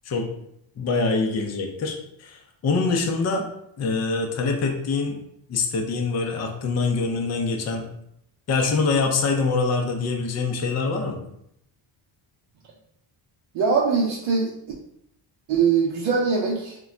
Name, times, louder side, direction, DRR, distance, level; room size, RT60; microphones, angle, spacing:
voice 1, 0.8-3.5 3.8-5.2 5.5-7.9 8.5-11.2, left 4 dB, 35° left, 2 dB, 0.5 m, -24 dB
voice 2, 13.5-14.5 15.5-16.8, right 5 dB, 65° right, -3 dB, 0.6 m, -22 dB
2.2 x 2.2 x 3.6 m, 0.75 s
cardioid pair, 85°, 49 cm